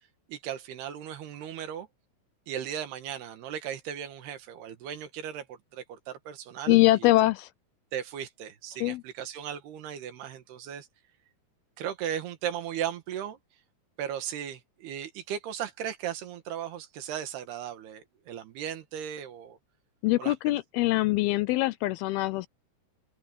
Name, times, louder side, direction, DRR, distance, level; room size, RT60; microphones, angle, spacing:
voice 1, 0.3-1.9 2.5-7.1 7.9-10.9 11.8-13.4 14.0-19.6 20.2-20.4, right 9 dB, 75° right, 3.6 m, -36 dB
voice 2, 6.7-7.5 8.8-9.0 20.0-22.5, left 18 dB, 80° left, 2.3 m, -23 dB
open air
omnidirectional pair, 4.7 m